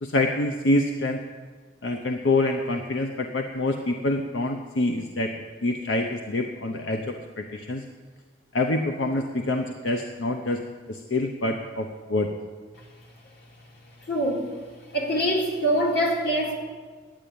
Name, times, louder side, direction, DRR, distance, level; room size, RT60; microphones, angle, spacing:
voice 1, 0.0-1.2 1.8-5.3 5.6-7.9 8.5-10.6 10.9-12.3, left 2 dB, 85° left, 4 dB, 0.8 m, -26 dB
voice 2, 14.1-14.4 14.9-16.5, equal, 60° left, -1 dB, 2.5 m, -24 dB
11.0 x 9.1 x 8.6 m, 1.5 s
head